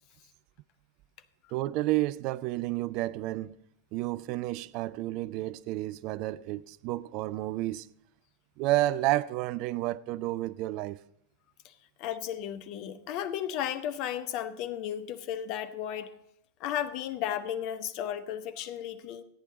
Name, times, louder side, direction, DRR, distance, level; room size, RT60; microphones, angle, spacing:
voice 1, 1.5-3.6 3.9-7.9 8.6-11.0, right 16 dB, 40° right, 0.3 m, -31 dB
voice 2, 12.0-16.1 16.6-19.2, left 10 dB, 40° left, 0.8 m, -34 dB
14.5 x 9.2 x 4.0 m
figure-of-eight pair, 90°, 0 cm